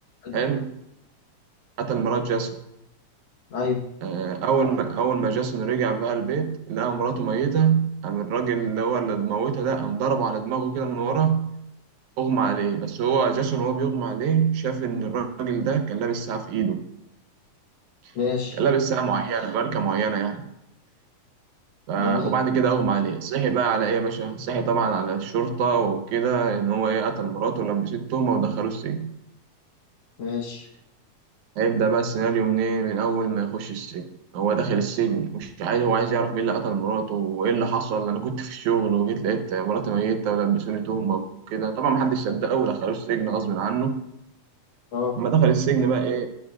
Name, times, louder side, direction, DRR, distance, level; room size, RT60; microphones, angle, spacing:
voice 1, 0.3-0.8 1.8-2.6 4.0-11.6 12.2-16.8 18.6-20.4 21.9-29.1 31.6-44.0 45.2-46.3, right 6 dB, 75° right, 7 dB, 2.3 m, -24 dB
voice 2, 3.5-3.8 18.2-18.6 22.0-22.4 30.2-30.7 44.9-45.2, left 5 dB, 60° left, 1 dB, 2.0 m, -28 dB
21.0 x 8.0 x 2.4 m, 0.84 s
omnidirectional pair, 3.5 m